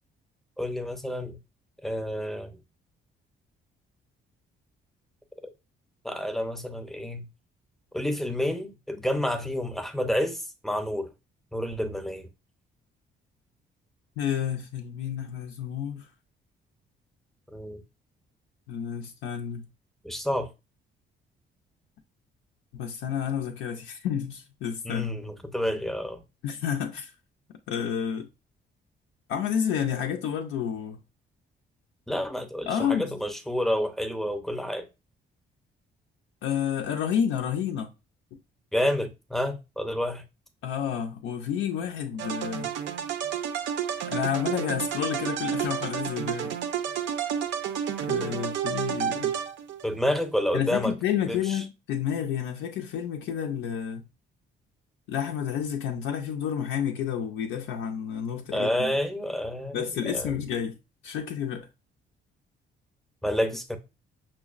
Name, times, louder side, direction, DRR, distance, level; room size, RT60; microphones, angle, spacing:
voice 1, 0.6-1.4 1.8-2.6 5.4-5.5 6.0-7.2 7.9-11.1 11.5-12.3 17.5-17.8 20.0-20.5 24.8-26.2 32.1-34.9 38.7-40.2 49.8-50.9 51.2-51.6 58.5-60.4 63.2-63.8, left 1 dB, ahead, 0.5 m, -29 dB
voice 2, 14.2-16.1 18.7-19.7 22.7-25.1 26.4-27.1 27.7-28.3 29.3-31.0 32.7-33.2 36.4-37.9 40.6-42.7 44.1-46.6 48.0-49.3 50.5-54.0 55.1-58.9 59.7-60.8 61.0-61.7, left 8 dB, 85° left, 0.4 m, -30 dB
sound 1, 42.2-49.9, right 9 dB, 70° right, 0.5 m, -30 dB
5.6 x 2.0 x 2.4 m
cardioid pair, 90°, 20 cm